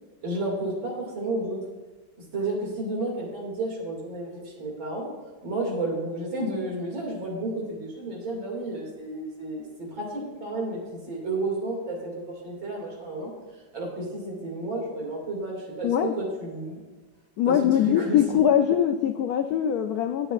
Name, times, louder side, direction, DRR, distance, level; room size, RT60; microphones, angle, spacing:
voice 1, 0.2-1.6 2.3-5.1 5.4-13.3 13.7-16.8 17.5-18.4, right 2 dB, 70° right, -2 dB, 3.1 m, -31 dB
voice 2, 15.8-16.1 17.4-20.3, left 9 dB, 90° left, 7 dB, 0.8 m, -22 dB
19.0 x 7.9 x 2.4 m, 1.2 s
omnidirectional pair, 2.2 m